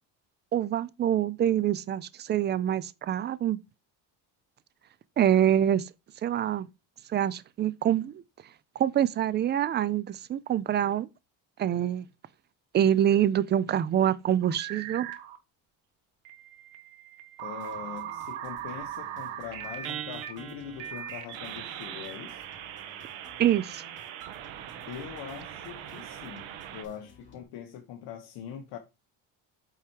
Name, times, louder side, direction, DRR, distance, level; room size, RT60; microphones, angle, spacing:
voice 1, 0.5-3.6 5.2-5.9 6.2-6.7 7.1-8.2 8.8-11.1 11.6-12.1 12.7-15.1 23.4-23.8, right 10 dB, 25° right, 0.3 m, -25 dB
sound 1, 14.4-15.4 16.2-26.8, right 11 dB, 90° right, 1.6 m, -40 dB
voice 2, 17.4-22.5 24.9-28.8, left 9 dB, 60° left, 1.3 m, -42 dB
sound 2, 17.6-27.4, left 2 dB, 25° left, 3.2 m, -56 dB
8.4 x 4.6 x 4.6 m
cardioid pair, 165°, 45 cm